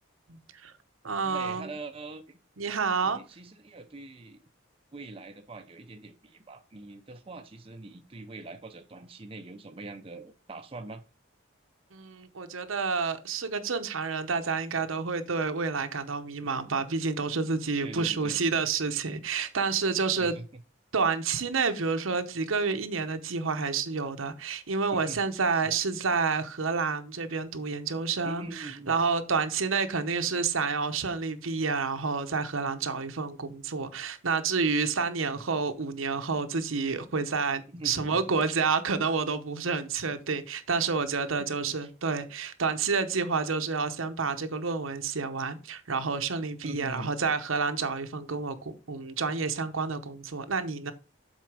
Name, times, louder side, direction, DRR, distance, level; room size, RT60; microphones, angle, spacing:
voice 1, 0.3-0.7 1.0-1.7 2.6-3.2 11.9-20.4 20.9-50.9, right 4 dB, 80° right, 0.9 m, -29 dB
voice 2, 1.2-2.4 3.0-4.4 4.9-11.0 17.8-18.4 20.2-20.5 24.9-25.2 25.6-25.7 28.2-28.9 37.7-38.2 41.4-41.5 41.8-41.9 46.6-47.1, right 2 dB, 25° right, 0.6 m, -43 dB
7.6 x 4.5 x 4.9 m
head